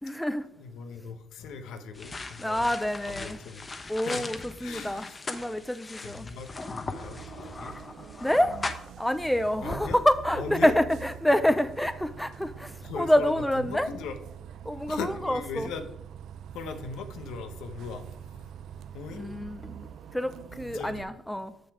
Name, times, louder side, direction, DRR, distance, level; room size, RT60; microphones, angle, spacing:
voice 1, 0.0-0.5 2.4-3.4 3.9-6.3 8.2-8.6 9.0-13.9 14.6-15.7 19.2-21.5, left 1 dB, 5° left, 0.6 m, -27 dB
voice 2, 0.6-2.7 3.0-4.3 4.6-5.2 6.0-7.8 9.6-10.0 10.3-10.7 12.8-14.2 14.9-15.9 16.5-18.5 18.9-19.4 20.7-21.1 21.4-21.5, left 5 dB, 90° left, 1.0 m, -39 dB
sound 1, 1.9-8.9, left 3 dB, 30° left, 0.9 m, -39 dB
Bus, 7.0-21.0, right 9 dB, 75° right, 0.5 m, -44 dB
6.8 x 6.5 x 4.7 m
cardioid pair, 90°, 0 cm